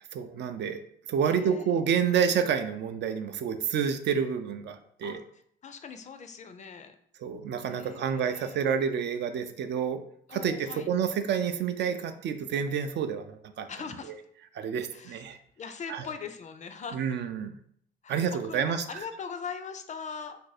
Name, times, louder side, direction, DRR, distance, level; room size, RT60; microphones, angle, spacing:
voice 1, 0.1-0.8 1.1-5.2 7.2-10.0 10.3-13.7 14.5-15.4 15.9-16.1 16.9-17.6 18.1-18.8, right 7 dB, 60° right, 8 dB, 0.4 m, -29 dB
voice 2, 1.2-1.9 5.0-7.0 7.6-8.6 10.3-10.9 13.7-14.1 14.9-17.1 18.0-20.4, left 6 dB, 40° left, 8 dB, 0.4 m, -41 dB
2.6 x 2.6 x 4.0 m, 0.66 s
cardioid pair, 90°, 20 cm